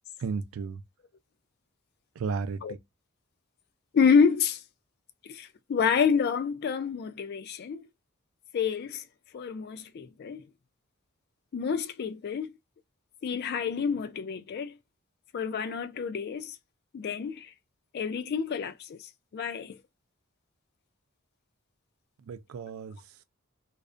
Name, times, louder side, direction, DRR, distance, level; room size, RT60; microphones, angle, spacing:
voice 1, 0.2-0.8 2.2-2.8 22.2-23.2, right 5 dB, 80° right, 0.4 m, -34 dB
voice 2, 3.9-4.6 5.3-7.9 8.5-9.0 9.3-10.4 11.5-12.5 13.2-14.8 15.3-16.6 16.9-17.5 17.9-19.8, left 6 dB, 50° left, 0.3 m, -28 dB
2.4 x 2.1 x 2.4 m
head